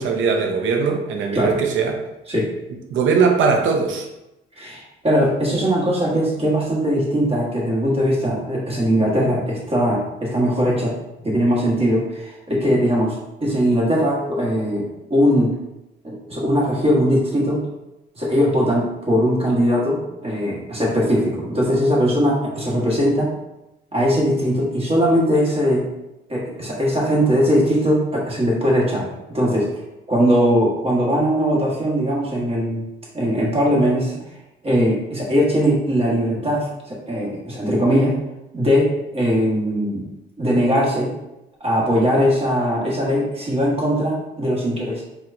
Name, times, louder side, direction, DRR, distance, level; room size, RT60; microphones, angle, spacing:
voice 1, 0.0-2.0 2.9-4.1, right 5 dB, 80° right, 3 dB, 0.6 m, -20 dB
voice 2, 4.6-10.9 11.2-15.5 16.0-17.7 18.1-23.4 23.9-25.8 26.3-29.7 30.1-32.8 33.1-34.2 34.6-38.2 38.5-40.0 40.4-41.1 41.6-45.0, equal, 30° right, -4 dB, 1.4 m, -20 dB
4.5 x 2.3 x 2.6 m, 0.94 s
cardioid pair, 90°, 20 cm